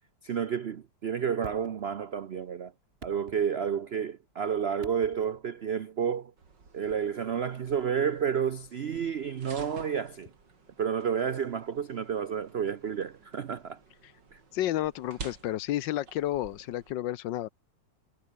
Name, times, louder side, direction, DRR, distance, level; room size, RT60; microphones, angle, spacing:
voice 1, 0.2-2.7 3.0-6.3 6.7-10.3 10.8-13.8 14.3-14.4, right 7 dB, 85° right, 0.5 m, -30 dB
sound 1, 1.4-2.3 2.8-4.0 4.8-5.5 7.0-7.1, right 4 dB, 30° right, 2.1 m, -49 dB
sound 2, 6.4-16.9, right 4 dB, 65° right, 3.9 m, -51 dB
voice 2, 14.5-17.5, left 13 dB, 75° left, 1.4 m, -31 dB
omnidirectional pair, 2.1 m